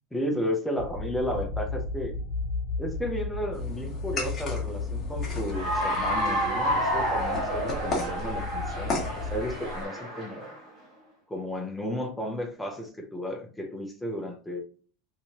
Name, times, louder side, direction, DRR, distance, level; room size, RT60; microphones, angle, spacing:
voice 1, 0.1-2.1 2.8-10.6 11.3-14.6, equal, 5° left, 2 dB, 0.6 m, -33 dB
sound 1, 0.8-9.5, left 3 dB, 80° left, 0.8 m, -35 dB
sound 2, 3.5-9.8, left 3 dB, 25° left, 1.1 m, -37 dB
Cheering / Applause, 5.5-10.6, equal, 30° right, 1.3 m, -30 dB
3.1 x 2.8 x 2.8 m, 0.41 s
supercardioid pair, 160°, 0 cm